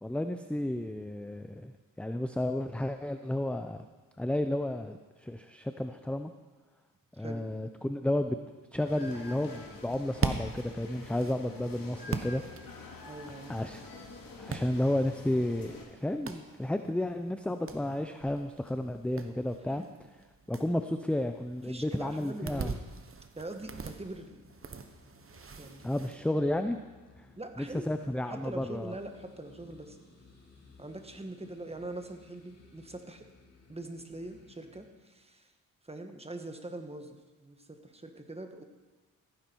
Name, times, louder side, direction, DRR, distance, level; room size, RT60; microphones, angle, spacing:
voice 1, 0.0-1.7 2.0-3.8 4.2-6.3 7.2-8.4 8.7-12.4 13.5-13.8 14.4-19.8 20.5-22.7 25.8-26.8 27.6-28.9, left 1 dB, 5° left, 7 dB, 0.5 m, -32 dB
sound 1, 8.8-15.8, left 3 dB, 80° left, 2.2 m, -47 dB
sound 2, 9.8-26.2, right 5 dB, 40° right, 1.1 m, -42 dB
voice 2, 13.0-13.6 19.7-19.9 21.6-22.8 23.4-24.4 25.6-25.8 27.4-27.9 28.3-30.0 30.8-33.3 33.7-35.5 35.8-38.6, right 2 dB, 20° right, 6 dB, 1.4 m, -43 dB
sound 3, 24.1-34.9, left 3 dB, 45° left, 2.9 m, -59 dB
15.0 x 9.5 x 4.6 m, 1.3 s
cardioid pair, 75°, 34 cm